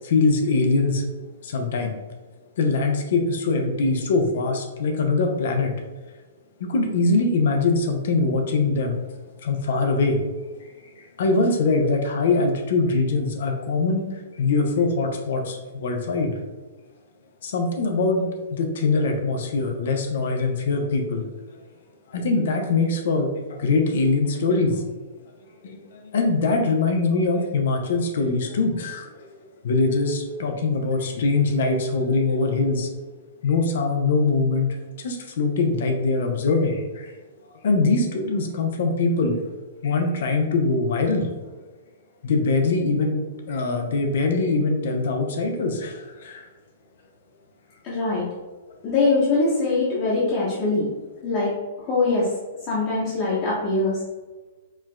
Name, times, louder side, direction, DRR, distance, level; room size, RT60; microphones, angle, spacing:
voice 1, 0.0-1.0 1.4-2.0 2.6-5.7 6.6-9.0 9.4-10.2 11.0-16.3 17.4-21.2 22.1-24.8 25.6-29.3 29.6-32.9 33.4-34.7 35.0-37.1 37.6-39.4 39.8-41.3 42.2-43.2 43.5-46.4, left 3 dB, 65° left, 4 dB, 0.6 m, -22 dB
voice 2, 47.8-48.3 48.8-50.9 51.2-51.5 51.8-52.3 52.7-54.0, left 3 dB, 40° left, -9 dB, 1.0 m, -22 dB
4.4 x 2.2 x 2.2 m, 1.3 s
hypercardioid pair, 115°, 0 cm